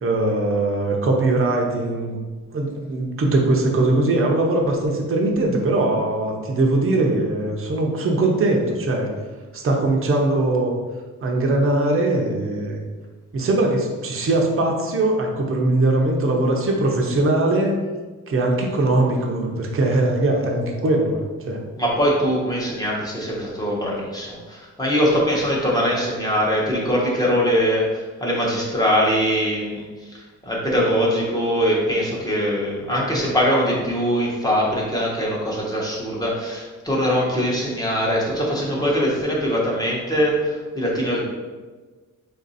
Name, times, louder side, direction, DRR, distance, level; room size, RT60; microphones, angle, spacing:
voice 1, 0.0-2.2 2.5-9.1 9.5-10.7 11.2-12.8 13.3-17.8 18.3-21.6 33.1-33.3, right 2 dB, 45° right, 1 dB, 0.6 m, -21 dB
voice 2, 21.8-29.9 30.4-41.2, equal, 10° left, -4 dB, 0.9 m, -22 dB
3.9 x 2.6 x 4.0 m, 1.4 s
wide cardioid pair, 140°, 31 cm